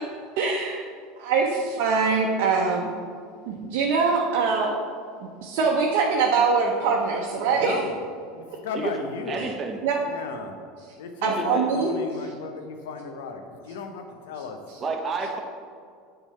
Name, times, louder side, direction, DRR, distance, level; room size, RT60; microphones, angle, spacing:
voice 1, 0.4-0.8 1.2-2.9 3.5-4.7 5.2-7.8 8.5-8.6 9.4-9.5 9.8-10.0 11.2-11.9, right 5 dB, 70° right, -1 dB, 0.8 m, -23 dB
voice 2, 7.5-8.0 8.3-9.5 10.0-10.6 11.0-14.6, left 5 dB, 80° left, 5 dB, 0.8 m, -35 dB
voice 3, 9.3-9.8 11.2-11.7 14.8-15.4, right 4 dB, 30° right, 2 dB, 1.0 m, -30 dB
7.1 x 3.8 x 5.5 m, 2.1 s
hypercardioid pair, 90°, 0 cm